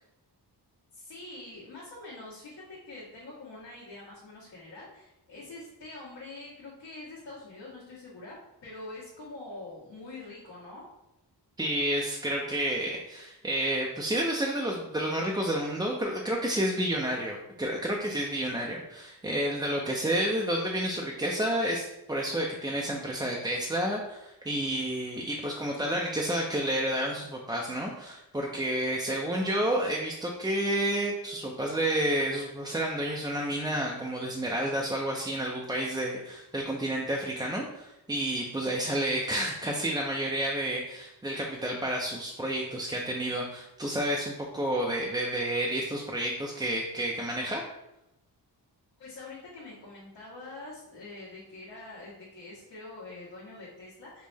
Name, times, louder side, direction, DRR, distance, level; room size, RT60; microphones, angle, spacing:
voice 1, 0.9-10.9 49.0-54.3, left 2 dB, 80° left, -10 dB, 1.4 m, -45 dB
voice 2, 11.6-47.6, right 1 dB, 10° right, -2 dB, 0.4 m, -30 dB
5.3 x 2.1 x 3.3 m, 0.88 s
wide cardioid pair, 100°, 42 cm